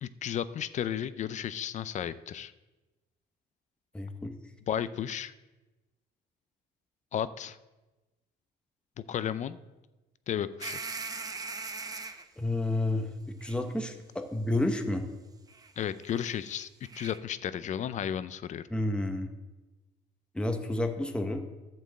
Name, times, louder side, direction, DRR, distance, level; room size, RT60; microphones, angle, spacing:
voice 1, 0.0-2.5 4.7-5.3 7.1-7.6 9.1-9.6 10.3-10.8 15.8-16.7 16.9-18.6, left 9 dB, 45° left, 15 dB, 0.4 m, -33 dB
voice 2, 3.9-4.3 12.4-15.1 18.7-19.3 20.3-21.4, left 2 dB, 5° left, 5 dB, 0.9 m, -30 dB
sound 1, 10.6-12.2 13.4-13.6 15.5-15.7 16.0-17.2, right 4 dB, 20° right, 0.7 m, -40 dB
11.0 x 4.5 x 7.5 m, 1.1 s
cardioid pair, 110°, 17 cm